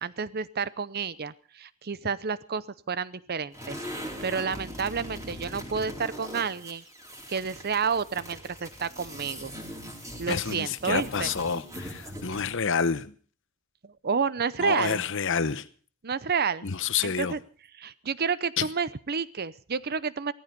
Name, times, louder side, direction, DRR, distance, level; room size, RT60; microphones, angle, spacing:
voice 1, 0.0-3.8 4.2-6.8 7.3-9.5 10.2-11.3 14.0-15.0 16.0-16.7 17.0-17.4 17.8-20.3, right 5 dB, 45° right, 18 dB, 0.7 m, -30 dB
sound 1, 3.5-12.6, equal, 15° right, 4.0 m, -41 dB
voice 2, 10.3-13.1 14.6-15.6 16.6-17.3 18.6-18.7, left 6 dB, 60° left, 15 dB, 1.0 m, -28 dB
17.0 x 14.0 x 5.3 m, 0.41 s
head